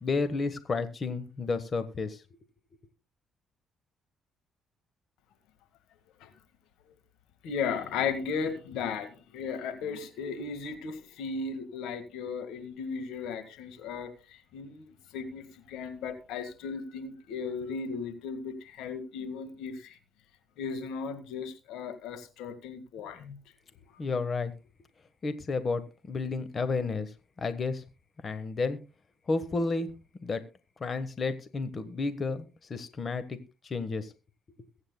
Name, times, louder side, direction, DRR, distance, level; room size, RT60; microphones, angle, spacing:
voice 1, 0.0-2.2 24.0-24.5 25.2-25.8 26.1-27.1 27.4-27.8 28.2-28.8 29.3-29.9 30.2-30.4 30.8-33.4 33.6-34.1, left 3 dB, 45° left, 11 dB, 1.2 m, -31 dB
voice 2, 7.4-14.9 15.1-20.0 20.6-23.3, left 5 dB, 80° left, 9 dB, 1.7 m, -36 dB
22.0 x 8.8 x 2.2 m, 0.30 s
supercardioid pair, 65°, 0 cm